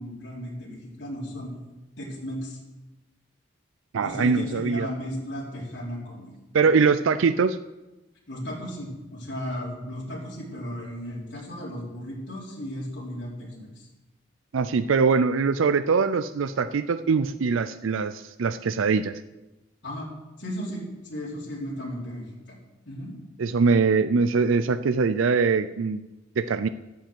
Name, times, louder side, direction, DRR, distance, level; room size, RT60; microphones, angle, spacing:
voice 1, 0.0-1.5 2.0-2.6 4.0-6.3 6.6-6.7 8.3-13.9 19.8-20.1 20.4-22.6 22.9-23.1, equal, 60° left, -6 dB, 3.8 m, -35 dB
voice 2, 3.9-4.9 6.5-7.6 14.5-19.2 23.4-26.0 26.4-26.7, right 5 dB, 85° right, 11 dB, 0.5 m, -22 dB
10.5 x 8.6 x 7.8 m, 1.0 s
head